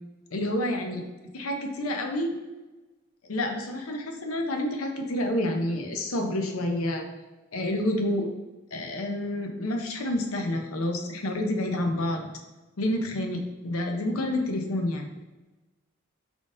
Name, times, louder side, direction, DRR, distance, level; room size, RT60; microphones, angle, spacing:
voice 1, 0.3-1.0 1.3-2.3 3.3-7.0 7.5-8.3 8.7-12.3 12.8-15.1, left 1 dB, 90° left, 4 dB, 0.7 m, -28 dB
5.2 x 3.6 x 2.5 m, 1.1 s
head